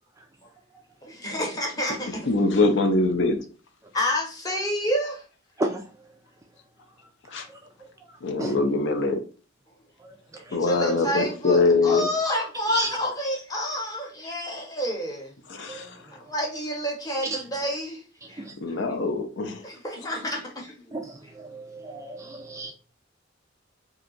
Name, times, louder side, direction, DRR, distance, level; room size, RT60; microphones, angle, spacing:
voice 1, 1.0-2.3 3.9-5.2 10.3-15.3 16.3-18.0 18.3-18.7 19.6-20.9 21.2-21.3, equal, 20° left, 0.9 m, -29 dB
voice 2, 2.1-3.4 7.3-7.5 8.2-9.2 10.5-12.1 15.5-16.0 18.6-19.6, left 3 dB, 60° left, 0.5 m, -23 dB
voice 3, 21.4-22.7, right 2 dB, 15° right, 0.3 m, -31 dB
2.7 x 2.3 x 3.8 m
head